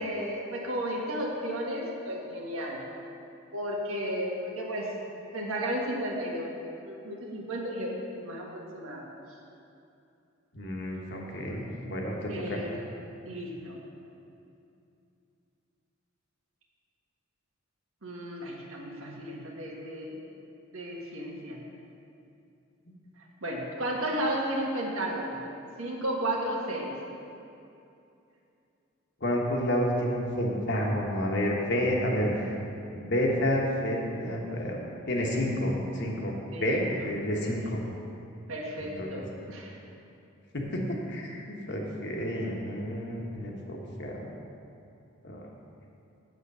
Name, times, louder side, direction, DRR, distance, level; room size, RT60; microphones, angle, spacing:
voice 1, 0.0-2.8 3.5-4.9 5.3-6.5 6.9-9.0 11.4-11.6 12.3-12.8 13.2-13.8 18.0-20.3 20.7-21.6 23.4-25.4 25.8-26.9 36.5-36.9 38.5-39.7, right 1 dB, 80° right, -2 dB, 1.6 m, -33 dB
voice 2, 10.5-12.6 22.9-23.0 29.2-32.5 32.9-36.3 36.6-37.8 38.8-39.2 40.5-44.3 45.2-45.4, equal, 55° left, -1 dB, 1.3 m, -30 dB
8.0 x 8.0 x 5.5 m, 2.7 s
head